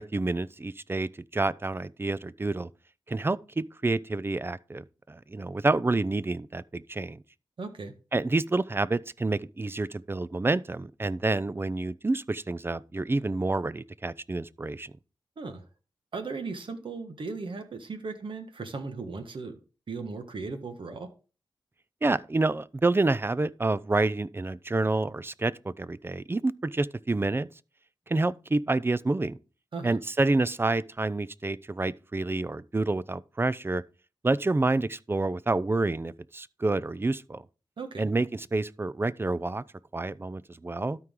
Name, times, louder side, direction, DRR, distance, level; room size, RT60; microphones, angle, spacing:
voice 1, 0.0-2.7 3.1-7.2 8.1-14.9 22.0-27.5 28.1-29.4 29.8-33.8 34.2-37.4 38.0-39.6 39.9-41.0, right 2 dB, 25° right, 0.4 m, -28 dB
voice 2, 7.6-7.9 15.4-15.6 16.1-19.6 19.9-21.1 29.7-30.0 37.8-38.1, right 4 dB, 70° right, 1.5 m, -37 dB
12.5 x 4.6 x 3.7 m
cardioid pair, 55°, 9 cm